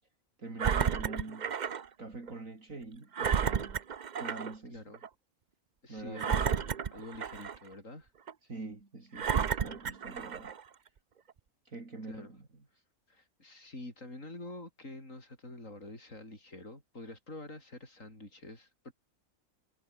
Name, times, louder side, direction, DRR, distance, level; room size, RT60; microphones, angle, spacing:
voice 1, 0.4-1.5 2.0-3.8 4.2-4.8 5.9-6.4 8.4-10.5 11.7-12.5, right 3 dB, 60° right, 4.2 m, -44 dB
Engine, 0.6-1.9 2.3-2.4 3.1-4.5 4.9-5.1 6.2-7.7 8.3-8.4 9.1-10.6 11.3-11.4, right 7 dB, 45° right, 0.6 m, -32 dB
voice 2, 4.7-5.0 5.8-8.1 12.1-12.3 13.1-18.9, left 2 dB, 60° left, 7.4 m, -47 dB
omnidirectional pair, 1.5 m